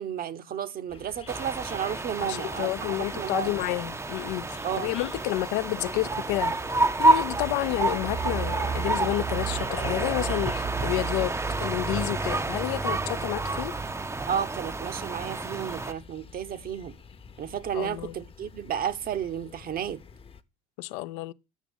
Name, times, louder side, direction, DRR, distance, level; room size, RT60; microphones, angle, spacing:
voice 1, 0.0-3.6 4.6-4.9 14.3-16.9 17.4-20.0, right 9 dB, 50° right, 0.9 m, -32 dB
sound 1, 0.9-20.4, left 6 dB, 30° left, 0.8 m, -46 dB
sound 2, 1.3-15.9, right 3 dB, 15° right, 0.6 m, -29 dB
voice 2, 2.2-6.5 7.0-13.8 17.7-18.1 20.8-21.3, left 18 dB, 75° left, 0.5 m, -30 dB
7.3 x 5.9 x 7.1 m
hypercardioid pair, 70°, 19 cm